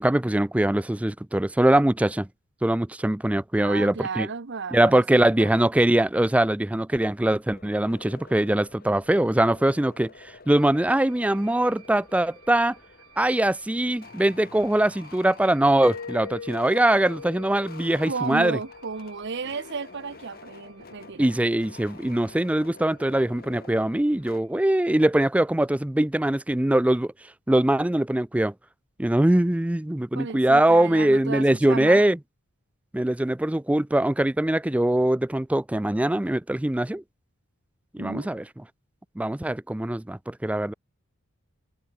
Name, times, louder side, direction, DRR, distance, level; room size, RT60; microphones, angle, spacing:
voice 1, 0.0-2.3 2.6-4.3 4.7-10.1 10.5-12.8 13.2-18.6 21.2-27.1 27.5-28.5 29.0-32.2 32.9-37.0 37.9-38.4 39.2-40.7, right 1 dB, 5° right, 0.4 m, -22 dB
voice 2, 3.6-5.5 18.1-21.3 30.1-32.0 38.0-38.3, right 4 dB, 55° right, 0.8 m, -33 dB
sound 1, 7.4-24.4, left 4 dB, 45° left, 1.7 m, -49 dB
sound 2, 10.5-24.7, right 9 dB, 80° right, 4.4 m, -58 dB
Mallet percussion, 15.8-20.4, left 5 dB, 75° left, 0.7 m, -41 dB
head